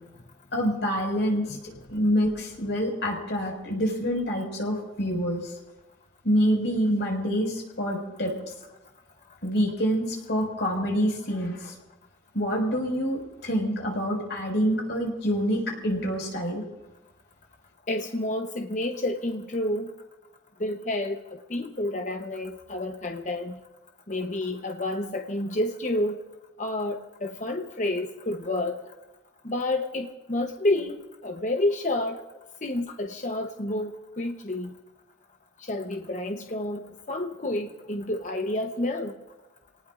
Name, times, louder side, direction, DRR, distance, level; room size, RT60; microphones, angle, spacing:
voice 1, 0.5-1.6 1.9-5.5 6.2-8.3 9.4-11.7 12.3-16.6, equal, 65° left, 1 dB, 5.4 m, -26 dB
voice 2, 17.9-19.9 20.6-21.2 21.5-23.6 24.1-26.2 26.6-28.8 29.4-30.9 31.2-32.2 32.6-34.7 35.7-39.1, left 1 dB, 40° left, 4 dB, 0.9 m, -29 dB
28.5 x 19.0 x 2.5 m, 1.1 s
head